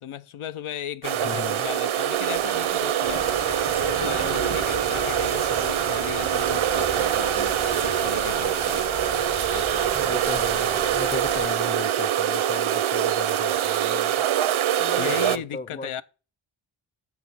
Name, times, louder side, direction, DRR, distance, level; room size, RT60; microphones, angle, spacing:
voice 1, 0.0-3.5 3.8-7.6 7.8-8.9 9.5-10.2 15.0-16.0, left 10 dB, 90° left, 0.7 m, -36 dB
sound 1, 1.0-15.4, right 11 dB, 75° right, 0.6 m, -24 dB
voice 2, 1.2-1.7 9.9-14.3 14.8-16.0, left 4 dB, 20° left, 0.4 m, -36 dB
Thunder, 1.6-7.9 8.9-9.2, left 4 dB, 45° left, 1.2 m, -47 dB
sound 2, 3.0-11.5, left 4 dB, 65° left, 1.7 m, -37 dB
6.8 x 6.1 x 7.2 m
wide cardioid pair, 100°, 49 cm